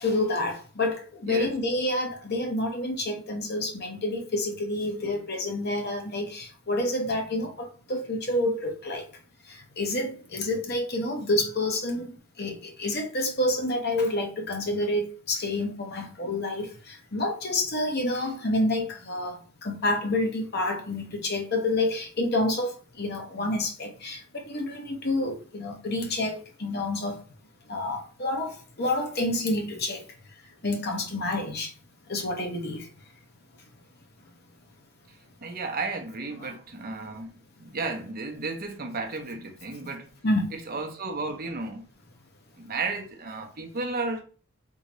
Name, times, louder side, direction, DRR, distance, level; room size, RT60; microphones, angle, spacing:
voice 1, 0.0-9.0 9.8-22.7 23.0-27.2 27.7-30.0 30.6-31.7 32.1-32.9 36.4-36.6 40.2-40.5, left 1 dB, 45° left, 0.9 m, -28 dB
voice 2, 35.4-40.1 40.7-41.9 42.6-44.2, right 3 dB, 40° right, 0.6 m, -33 dB
3.7 x 2.7 x 3.0 m
head